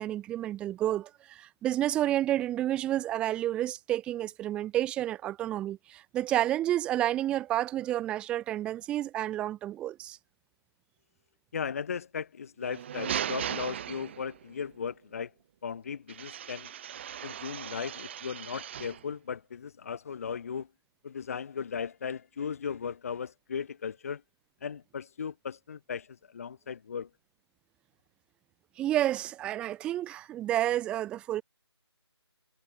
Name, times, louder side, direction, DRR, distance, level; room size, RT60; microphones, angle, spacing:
voice 1, 0.0-10.2 28.8-31.4, right 13 dB, 5° right, 1.9 m, -30 dB
voice 2, 11.5-15.3 15.6-16.7 17.2-20.7 21.0-24.2 24.6-27.1, left 6 dB, 30° left, 1.7 m, -37 dB
sound 1, 12.6-14.5 16.1-19.1, right 9 dB, 25° right, 6.4 m, -37 dB
figure-of-eight pair, 165°, 14 cm